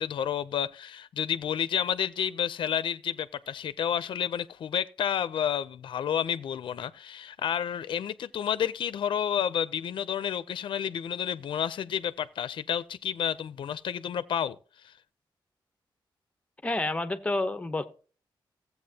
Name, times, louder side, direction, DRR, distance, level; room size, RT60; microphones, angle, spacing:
voice 1, 0.0-14.6 14.8-14.9, left 9 dB, 75° left, 0.5 m, -30 dB
voice 2, 16.6-17.9, left 2 dB, 15° left, 0.8 m, -29 dB
15.5 x 8.1 x 2.8 m
wide cardioid pair, 165°, 9 cm